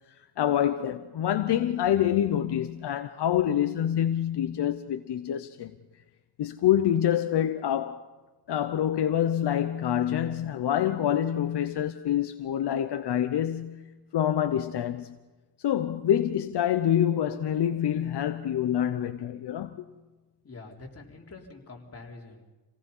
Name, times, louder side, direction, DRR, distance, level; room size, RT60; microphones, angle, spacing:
voice 1, 0.2-5.7 6.4-8.1 8.5-13.8 14.1-15.2 15.6-19.8, left 10 dB, 75° left, 0.9 m, -26 dB
voice 2, 20.4-22.5, left 3 dB, 35° left, 4.0 m, -46 dB
27.5 x 18.0 x 5.6 m
cardioid pair, 115°, 41 cm